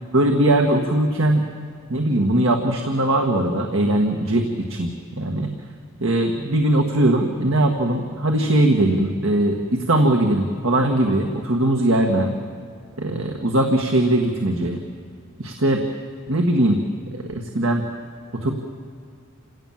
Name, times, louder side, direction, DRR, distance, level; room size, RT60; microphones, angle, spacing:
voice 1, 0.1-1.4 1.9-4.9 5.2-5.5 6.0-12.4 13.0-14.8 15.4-15.8 16.3-16.8 17.1-17.8 18.3-18.5, right 1 dB, 75° right, 2 dB, 1.7 m, -20 dB
28.0 x 17.5 x 7.4 m, 2.3 s
head